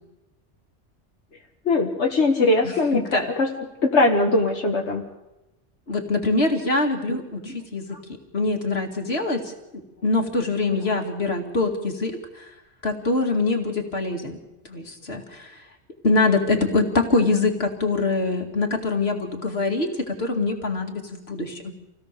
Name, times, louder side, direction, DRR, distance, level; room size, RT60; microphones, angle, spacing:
voice 1, 1.7-3.5 3.8-5.1 7.4-7.6 7.9-8.0 10.7-10.8, left 2 dB, 85° left, 1 dB, 1.9 m, -21 dB
voice 2, 2.6-3.2 5.9-8.0 8.3-12.5 12.8-14.4 14.7-15.6 16.0-21.7, left 3 dB, 65° left, 4 dB, 2.6 m, -24 dB
27.0 x 17.0 x 6.8 m, 0.97 s
omnidirectional pair, 1.1 m